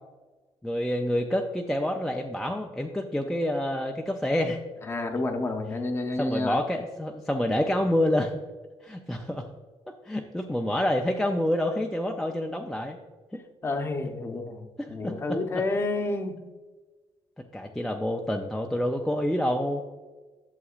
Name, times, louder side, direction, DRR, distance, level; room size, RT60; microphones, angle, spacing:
voice 1, 0.6-4.6 6.2-8.3 8.8-9.5 10.0-13.0 13.3-13.4 14.8-15.4 17.5-19.8, left 1 dB, 5° left, 1 dB, 0.4 m, -27 dB
voice 2, 4.8-6.6 13.6-16.4, left 2 dB, 25° left, 5 dB, 0.7 m, -30 dB
11.0 x 7.1 x 2.4 m, 1.3 s
cardioid pair, 175°, 11 cm